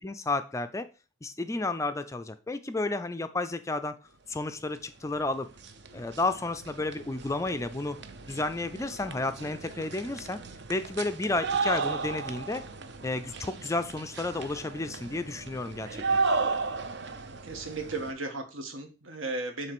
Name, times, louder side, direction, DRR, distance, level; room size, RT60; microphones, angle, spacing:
voice 1, 0.0-0.9 1.2-4.0 4.3-5.5 5.9-8.0 8.3-10.4 10.7-12.6 13.0-16.0, left 2 dB, 15° left, 10 dB, 0.4 m, -32 dB
sound 1, 5.1-5.2 5.4-18.1, right 4 dB, 55° right, 0.7 m, -34 dB
voice 2, 17.4-19.7, right 2 dB, 80° right, 6 dB, 1.4 m, -35 dB
7.5 x 3.2 x 5.9 m, 0.33 s
head